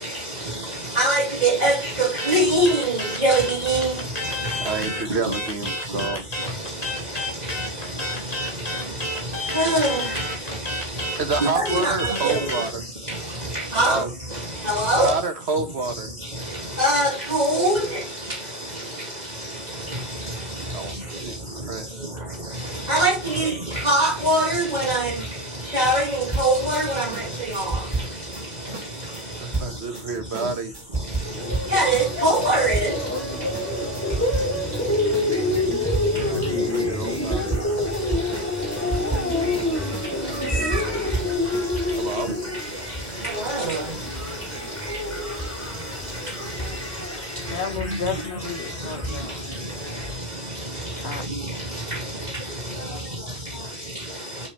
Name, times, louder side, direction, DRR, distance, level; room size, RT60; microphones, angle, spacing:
voice 1, 0.9-4.0 5.2-5.3 9.5-10.3 11.5-12.5 13.1-13.2 13.5-14.0 14.6-15.2 16.8-18.0 22.9-25.3 25.7-27.8 31.7-33.0 40.4-41.0 43.2-43.8 51.3-51.4 51.7-52.0, right 1 dB, 40° right, 2.3 m, -22 dB
sound 1, 2.2-12.7, left 1 dB, 35° left, 2.3 m, -30 dB
voice 2, 4.6-6.2 11.2-12.8 13.7-14.1 15.0-16.1 20.7-21.4 21.6-22.1 23.3-23.4 29.4-30.7 36.1-37.6 41.9-42.4, right 4 dB, 70° right, 1.6 m, -29 dB
sound 2, 26.3-33.2 33.5-34.8 35.1-42.0, right 3 dB, 20° right, 2.3 m, -31 dB
sound 3, 31.2-50.1, left 2 dB, 15° left, 2.4 m, -28 dB
voice 3, 47.5-49.5 50.9-51.3 52.1-52.2 52.8-53.9, left 5 dB, 70° left, 1.5 m, -34 dB
7.4 x 7.2 x 3.1 m
omnidirectional pair, 1.1 m